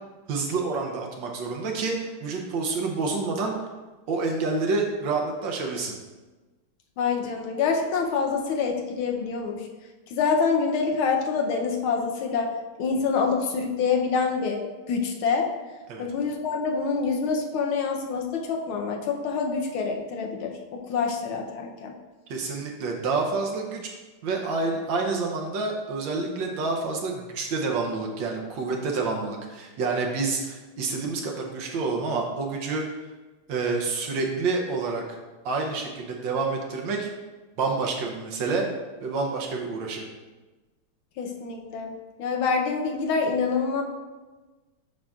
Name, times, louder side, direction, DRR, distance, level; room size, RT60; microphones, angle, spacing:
voice 1, 0.3-3.7 4.1-5.9 15.9-16.0 22.3-23.9 24.2-32.9 33.5-35.0 35.4-37.1 37.6-38.7 39.0-40.0, right 3 dB, 70° right, 1 dB, 1.4 m, -28 dB
voice 2, 7.0-9.7 10.1-12.5 12.8-14.6 14.9-15.5 16.0-21.9 41.2-41.9 42.2-43.8, left 5 dB, 75° left, 2 dB, 1.5 m, -26 dB
7.5 x 5.8 x 2.4 m, 1.2 s
omnidirectional pair, 2.3 m